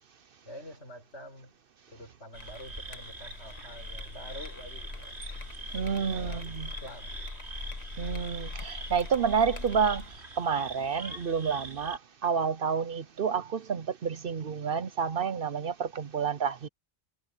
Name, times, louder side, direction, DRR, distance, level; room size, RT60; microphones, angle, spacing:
voice 1, 0.4-1.5 1.9-5.2 6.0-7.3, equal, 80° left, 7.4 m, -47 dB
sound 1, 2.3-10.2, left 3 dB, 35° left, 1.4 m, -42 dB
sound 2, 2.3-12.0, right 2 dB, 75° right, 3.5 m, -44 dB
voice 2, 5.7-6.7 8.0-10.1 10.4-16.7, right 6 dB, 55° right, 0.8 m, -29 dB
omnidirectional pair, 1.2 m